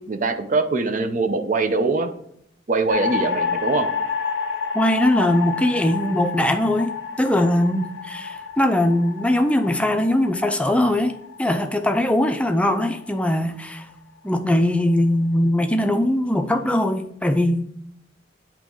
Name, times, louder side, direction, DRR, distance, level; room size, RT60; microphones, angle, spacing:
voice 1, 0.1-2.1 2.7-3.9, right 3 dB, 45° right, 7 dB, 0.6 m, -22 dB
sound 1, 2.9-13.2, left 5 dB, 85° left, 0.7 m, -29 dB
voice 2, 4.7-11.1 11.4-13.9 14.2-17.7, left 1 dB, 5° left, 7 dB, 0.5 m, -21 dB
8.6 x 3.0 x 3.7 m, 0.72 s
head